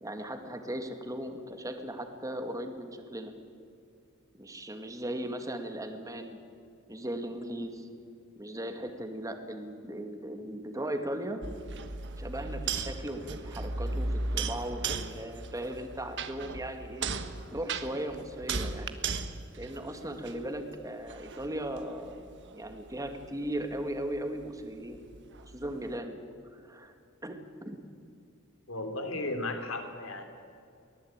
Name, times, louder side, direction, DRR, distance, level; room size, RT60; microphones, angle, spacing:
voice 1, 0.0-3.3 4.3-6.4 6.9-7.9 8.4-11.4 12.2-17.1 17.5-19.0 19.6-22.2 22.5-25.0 25.5-26.2 26.5-26.9 27.2-27.4 27.6-27.8, right 1 dB, 15° right, 6 dB, 2.2 m, -37 dB
sound 1, 11.4-20.6 21.1-26.0, right 4 dB, 55° right, 1.4 m, -37 dB
voice 2, 28.7-30.2, left 2 dB, 70° left, 6 dB, 3.3 m, -35 dB
24.0 x 18.5 x 8.9 m, 2.4 s
head